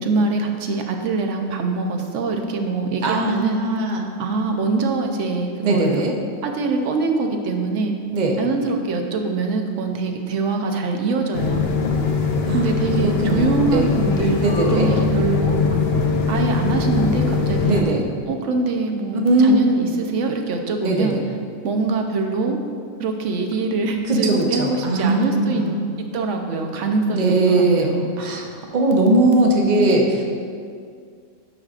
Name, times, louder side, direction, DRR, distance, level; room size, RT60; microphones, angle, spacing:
voice 1, 0.0-3.6 4.2-6.0 6.4-7.9 8.4-11.7 12.5-15.5 16.3-17.8 18.3-21.2 21.6-22.6 23.0-25.8 26.1-28.1, right 3 dB, 70° right, 4 dB, 1.0 m, -23 dB
voice 2, 3.0-4.1 5.6-6.1 8.1-8.4 12.4-13.9 14.4-14.9 17.6-18.0 19.2-20.0 20.8-21.2 24.1-25.8 27.1-27.9 28.2-28.5 28.7-30.2, right 2 dB, 40° right, 1 dB, 0.7 m, -19 dB
sound 1, 11.3-17.8, left 4 dB, 55° left, 0.8 m, -21 dB
9.6 x 6.3 x 2.4 m, 2.2 s
omnidirectional pair, 1.4 m